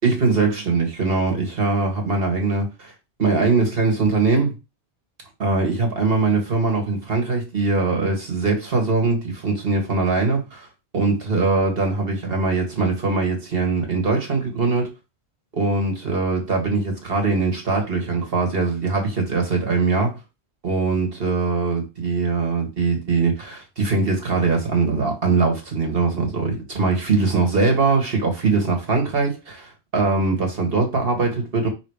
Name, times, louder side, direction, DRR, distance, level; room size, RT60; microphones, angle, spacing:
voice 1, 0.0-2.9 3.2-4.5 5.4-10.7 10.9-14.9 15.5-20.2 20.6-31.7, right 3 dB, 60° right, 2.0 m, -21 dB
5.0 x 3.8 x 4.9 m
omnidirectional pair, 1.1 m